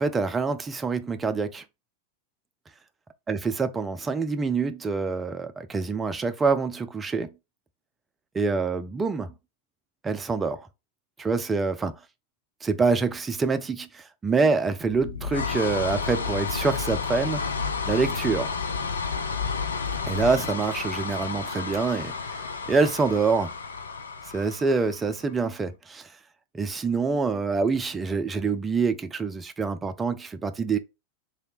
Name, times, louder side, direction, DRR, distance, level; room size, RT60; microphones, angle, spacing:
voice 1, 0.0-1.6 3.3-7.3 8.3-9.3 10.0-10.7 11.2-11.9 12.6-17.4 17.9-18.5 20.1-22.4 22.7-23.5 24.3-26.1 26.5-30.8, right 4 dB, 15° right, 0.5 m, -26 dB
sound 1, 14.8-25.3, left 5 dB, 70° left, 0.5 m, -31 dB
3.2 x 2.8 x 4.1 m
figure-of-eight pair, 90°, 0 cm